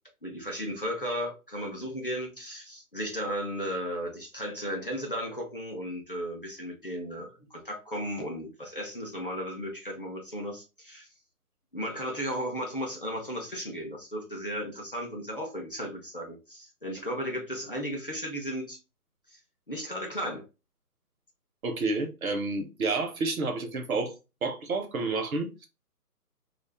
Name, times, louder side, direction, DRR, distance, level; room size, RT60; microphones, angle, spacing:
voice 1, 0.2-11.1 11.7-18.8 19.3-19.4 19.7-20.4, equal, 35° left, 0.5 m, -35 dB
voice 2, 21.6-24.1 24.4-25.7, right 3 dB, 65° right, 0.8 m, -30 dB
2.4 x 2.4 x 3.2 m
hypercardioid pair, 170°, 47 cm